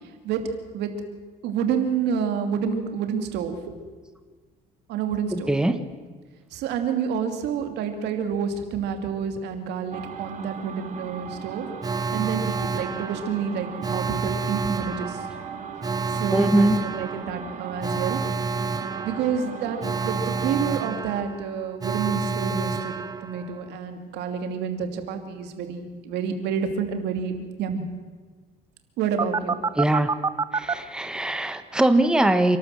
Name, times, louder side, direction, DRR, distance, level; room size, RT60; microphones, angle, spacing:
voice 1, 1.4-3.7 4.9-5.5 6.5-11.7 12.1-15.2 16.1-18.2 19.0-27.3 27.6-27.8 29.0-29.6, right 7 dB, 85° right, 6 dB, 2.7 m, -28 dB
voice 2, 5.3-5.8 16.3-16.8 29.8-30.1 30.5-32.6, right 1 dB, 5° right, 9 dB, 1.2 m, -21 dB
sound 1, 9.9-20.9, right 6 dB, 50° right, 2.1 m, -38 dB
Alarm, 11.8-23.7 29.2-30.7, right 4 dB, 20° right, 0.8 m, -29 dB
28.0 x 12.5 x 7.7 m, 1.4 s
cardioid pair, 110°, 17 cm